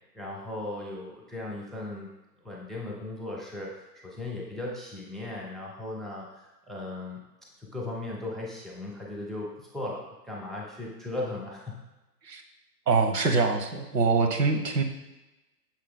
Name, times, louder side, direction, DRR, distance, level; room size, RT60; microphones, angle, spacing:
voice 1, 0.1-2.1 2.4-7.2 7.6-11.8, left 2 dB, ahead, -3 dB, 0.3 m, -37 dB
voice 2, 12.9-14.8, right 4 dB, 80° right, 5 dB, 1.1 m, -24 dB
6.4 x 3.9 x 4.0 m, 1.0 s
hypercardioid pair, 165°, 49 cm